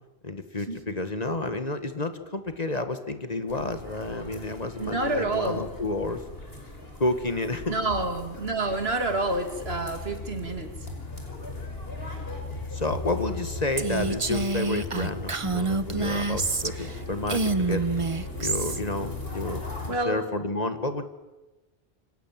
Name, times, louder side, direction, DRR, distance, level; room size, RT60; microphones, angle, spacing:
voice 1, 0.2-6.2 7.0-7.8 12.7-17.9 18.4-19.6 19.9-21.0, left 2 dB, 40° left, 9 dB, 1.8 m, -30 dB
sound 1, 3.5-19.9, left 2 dB, 65° left, 5.7 m, -38 dB
voice 2, 4.8-5.7 7.7-10.9 19.9-20.3, right 2 dB, 70° right, 7 dB, 2.8 m, -28 dB
Female speech woman speaking, 13.8-17.0 17.3-18.8, right 3 dB, 30° right, 1.0 m, -27 dB
27.0 x 26.0 x 7.6 m, 1.1 s
omnidirectional pair, 1.1 m